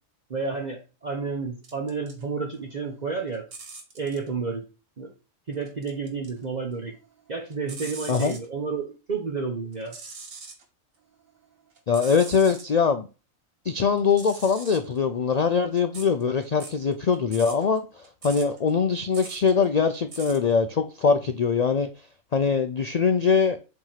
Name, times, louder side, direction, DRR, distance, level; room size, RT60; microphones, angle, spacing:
voice 1, 0.3-3.4 3.9-4.6 5.0-5.1 5.5-6.9 7.3-10.0, right 4 dB, 35° right, 0 dB, 1.0 m, -31 dB
sound 1, 1.6-2.2 2.6-4.3 5.5-6.4 6.8-8.5 9.7-10.6 11.1-12.7 14.0-20.5, right 4 dB, 75° right, 1.8 m, -43 dB
voice 2, 11.9-13.1 13.6-21.9 22.3-23.6, left 5 dB, 70° left, 8 dB, 0.3 m, -22 dB
7.6 x 3.0 x 5.7 m, 0.32 s
omnidirectional pair, 1.4 m